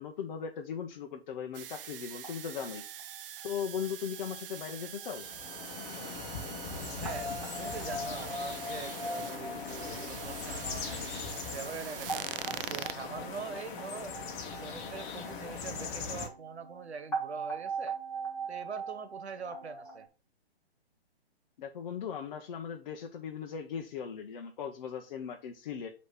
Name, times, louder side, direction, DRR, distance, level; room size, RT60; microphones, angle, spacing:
voice 1, 0.0-2.8 3.4-5.3 21.6-25.9, left 7 dB, 45° left, 3 dB, 0.9 m, -38 dB
sound 1, 1.5-12.9, right 10 dB, 60° right, 0.5 m, -43 dB
sound 2, 2.2-2.3 2.6-3.7 4.3-4.4 4.7-4.8 5.0-5.1 5.4-5.5 5.7-6.1 6.4-11.4 11.9-20.0, right 3 dB, ahead, 2.3 m, -41 dB
sound 3, 5.1-16.3, left 5 dB, 30° left, 1.3 m, -40 dB
voice 2, 7.0-11.0 11.5-14.1 14.5-17.9 18.5-20.1, right 5 dB, 80° right, 11 dB, 1.3 m, -43 dB
7.9 x 3.2 x 5.6 m, 0.35 s
hypercardioid pair, 145°, 32 cm